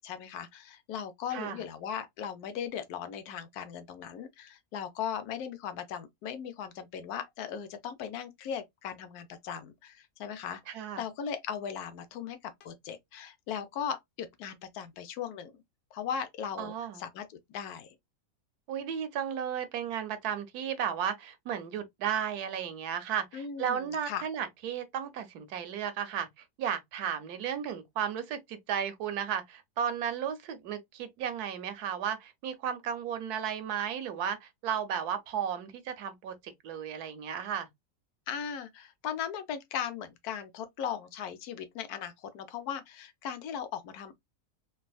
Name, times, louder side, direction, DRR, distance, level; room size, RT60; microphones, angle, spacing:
voice 1, 0.0-15.6 15.9-18.0 23.3-24.3 38.3-44.1, left 8 dB, 80° left, 1.1 m, -38 dB
voice 2, 1.3-1.6 10.7-11.0 16.6-17.0 18.7-26.3 26.6-37.7, right 8 dB, 85° right, 1.2 m, -34 dB
3.4 x 2.4 x 2.3 m
omnidirectional pair, 1.6 m